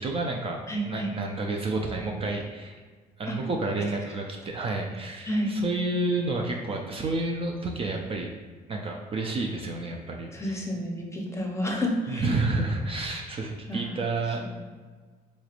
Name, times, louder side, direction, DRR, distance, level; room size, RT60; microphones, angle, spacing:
voice 1, 0.0-2.8 3.2-8.3 8.7-10.3 12.1-14.6, right 2 dB, 35° right, 1 dB, 0.4 m, -30 dB
voice 2, 0.7-1.1 3.3-3.4 5.2-5.5 10.3-12.2 13.7-13.9, equal, 15° left, 0 dB, 0.6 m, -30 dB
4.0 x 3.1 x 2.4 m, 1.5 s
cardioid pair, 110°, 17 cm